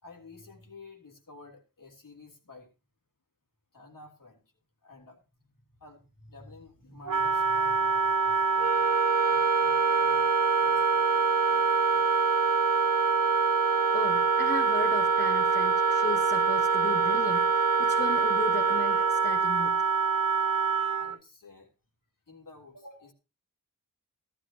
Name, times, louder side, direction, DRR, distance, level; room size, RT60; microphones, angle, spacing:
voice 1, 0.0-2.7 3.7-4.4 4.8-5.2 5.8-8.8 9.2-12.4 20.9-21.7 22.3-23.1, left 2 dB, 70° left, 2 dB, 3.4 m, -51 dB
Wind instrument woodwind instrument, 7.1-21.2, right 5 dB, 70° right, 0.8 m, -26 dB
sound 1, 8.6-19.5, right 6 dB, 25° right, 0.7 m, -30 dB
voice 2, 13.9-19.8, left 3 dB, 30° left, 4 dB, 1.2 m, -36 dB
15.0 x 12.5 x 2.9 m, 0.29 s
wide cardioid pair, 85°, 33 cm